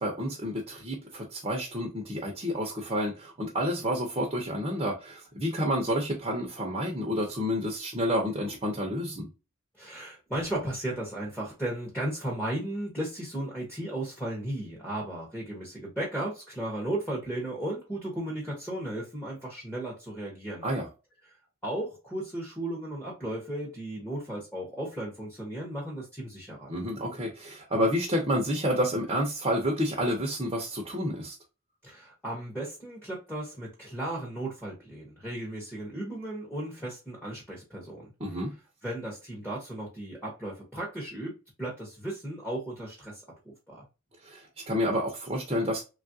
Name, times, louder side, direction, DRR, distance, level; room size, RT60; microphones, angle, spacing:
voice 1, 0.0-9.3 20.6-20.9 26.7-31.4 38.2-38.5 44.2-45.8, equal, 25° right, 0.6 m, -29 dB
voice 2, 9.7-20.7 21.2-21.4 21.6-26.7 31.8-38.1 38.8-43.2 43.7-43.9, right 1 dB, 5° left, 0.8 m, -35 dB
3.3 x 2.4 x 2.6 m
head